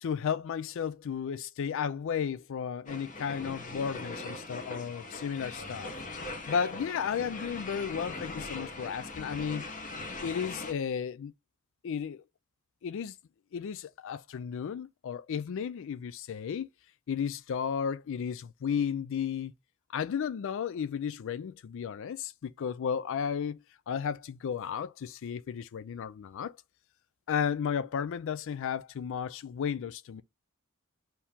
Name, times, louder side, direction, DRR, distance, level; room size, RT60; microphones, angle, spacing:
voice 1, 0.0-5.9 6.5-11.3 11.8-12.2 12.8-13.2 13.5-16.7 17.1-19.5 19.9-26.6 27.3-30.2, left 7 dB, 65° left, 0.4 m, -34 dB
sound 1, 2.9-10.7, left 2 dB, 40° left, 0.9 m, -40 dB
4.5 x 2.8 x 3.5 m
head